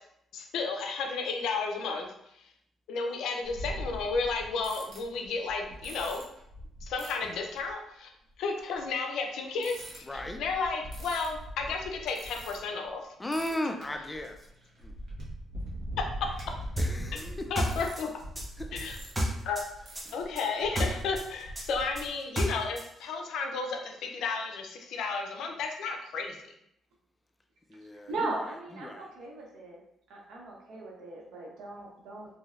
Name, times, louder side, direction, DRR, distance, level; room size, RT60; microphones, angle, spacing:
voice 1, 0.3-2.1 2.3-2.4 2.9-6.2 6.8-8.1 8.4-13.0 16.0-16.1 17.5-18.1 18.7-19.0 19.4-19.6 20.1-26.4, left 4 dB, 80° left, 3 dB, 0.5 m, -33 dB
sound 1, 3.4-7.7 8.6-8.8 9.6-12.9 13.2-22.1, right 1 dB, 55° right, 1.0 m, -42 dB
voice 2, 10.1-10.4 13.2-14.4 14.8-15.0 16.8-17.6 18.6-18.8 20.1-20.5 27.7-28.3 28.7-29.1, left 1 dB, 15° left, 5 dB, 0.4 m, -36 dB
sound 2, 16.8-19.7 19.9-22.9, equal, 15° right, 0.7 m, -31 dB
voice 3, 27.9-29.8 30.1-32.4, right 2 dB, 85° right, -1 dB, 0.7 m, -38 dB
3.1 x 2.7 x 2.4 m, 0.75 s
cardioid pair, 90°, 0 cm